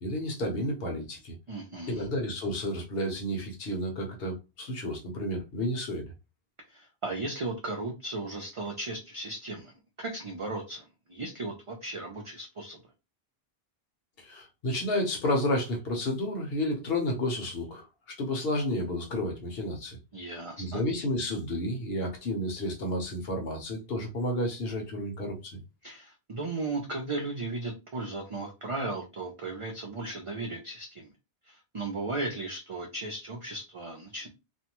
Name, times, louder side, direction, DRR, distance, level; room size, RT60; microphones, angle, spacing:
voice 1, 0.0-1.3 1.9-6.1 14.2-17.8 18.2-20.0 20.6-25.6, left 1 dB, 70° left, 1.1 m, -31 dB
voice 2, 1.5-2.1 6.7-9.7 10.0-10.8 11.1-12.8 20.1-20.8 25.8-31.1 31.5-34.3, right 2 dB, 40° right, 0.5 m, -36 dB
2.6 x 2.2 x 2.9 m
omnidirectional pair, 1.1 m